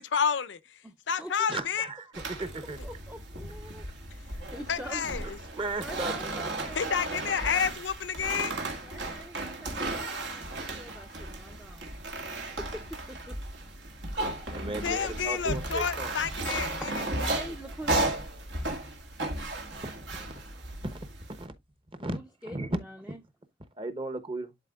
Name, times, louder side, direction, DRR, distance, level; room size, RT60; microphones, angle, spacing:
voice 1, 0.0-0.8 1.1-1.9 4.7-5.2 6.7-8.6 14.8-16.9 17.2-17.4, left 7 dB, 80° left, 0.6 m, -30 dB
voice 2, 0.8-1.5 2.8-3.9 4.2-5.3 5.8-7.4 8.8-11.9 12.3-13.4 16.8-18.1 22.0-23.2, right 1 dB, 5° right, 0.5 m, -44 dB
voice 3, 1.5-2.8 5.5-6.2 14.5-16.1 20.8-21.1 21.4-21.5 22.0-22.2 22.5-22.8 23.8-24.5, right 2 dB, 30° right, 0.9 m, -35 dB
sound 1, 2.1-21.4, right 2 dB, 80° right, 1.9 m, -35 dB
11.5 x 4.3 x 2.3 m
head